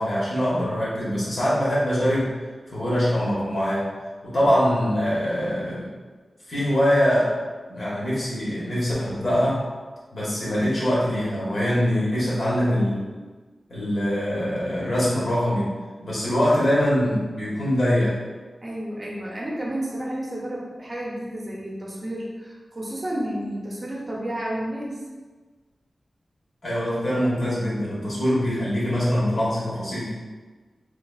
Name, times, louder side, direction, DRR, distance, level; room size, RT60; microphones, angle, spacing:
voice 1, 0.0-2.3 2.7-3.8 4.2-5.8 6.5-7.3 7.7-9.6 10.1-13.1 13.7-15.7 16.0-18.2 26.6-30.1, equal, 60° left, -8 dB, 1.4 m, -23 dB
voice 2, 18.6-25.0, right 1 dB, 35° right, -4 dB, 0.7 m, -31 dB
3.3 x 3.2 x 2.3 m, 1.4 s
wide cardioid pair, 105°, 0 cm